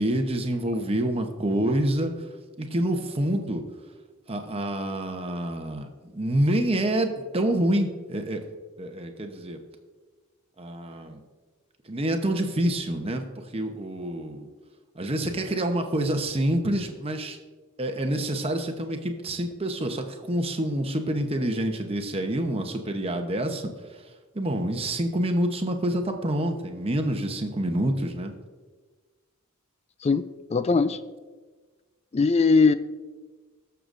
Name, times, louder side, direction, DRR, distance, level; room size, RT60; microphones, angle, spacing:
voice 1, 0.0-2.3 2.6-3.6 4.3-8.4 8.8-9.6 10.6-11.2 11.8-13.2 13.5-14.5 14.9-17.4 17.8-23.7 24.3-28.3, right 1 dB, 25° right, 5 dB, 0.9 m, -27 dB
voice 2, 30.5-31.0 32.1-32.7, left 4 dB, 30° left, 14 dB, 0.3 m, -20 dB
18.5 x 6.8 x 2.6 m, 1.4 s
head